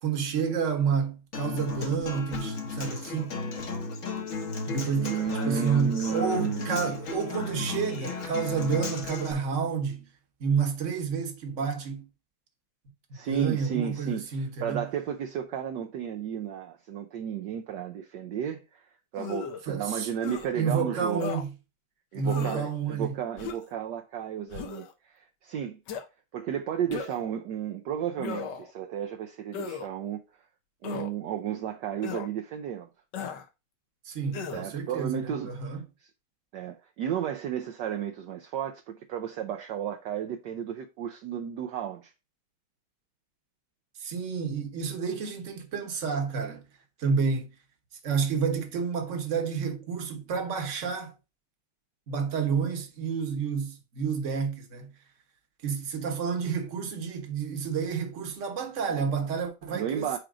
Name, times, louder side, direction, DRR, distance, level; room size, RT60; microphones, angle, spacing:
voice 1, 0.0-3.3 3.6-3.7 4.7-5.2 5.4-10.1 10.4-12.1 13.2-14.8 19.7-20.1 20.5-21.5 22.1-23.1 34.0-35.8 44.0-46.6 47.0-47.5 48.0-51.1 52.1-54.9 55.6-60.2, right 6 dB, 45° right, 1.4 m, -29 dB
Human voice / Acoustic guitar, 1.3-9.3, left 4 dB, 45° left, 1.4 m, -35 dB
voice 2, 5.0-7.0 13.1-14.3 14.6-18.8 19.1-21.3 22.1-25.8 26.3-30.2 30.8-32.9 34.5-35.6 36.5-42.1 59.7-60.2, right 9 dB, 70° right, 1.2 m, -33 dB
sound 1, 19.2-19.6 20.2-20.5 21.2-21.4 22.2-22.7 23.4-23.7 24.5-24.9 25.9-26.0 26.9-27.3 28.2-28.7 29.5-29.9 30.8-31.1 32.0-32.3 33.1-33.4 34.3-34.7, left 6 dB, 65° left, 1.4 m, -36 dB
5.1 x 4.4 x 4.8 m
omnidirectional pair, 2.2 m